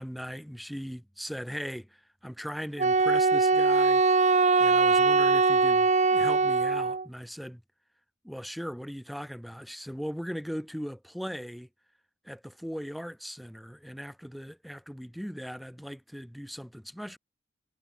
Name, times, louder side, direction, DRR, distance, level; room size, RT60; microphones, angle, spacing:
voice 1, 0.0-4.0 4.6-7.6 8.2-11.7 12.2-17.2, equal, ahead, 2.7 m, -39 dB
Wind instrument woodwind instrument, 2.8-7.1, right 4 dB, 35° right, 1.2 m, -22 dB
head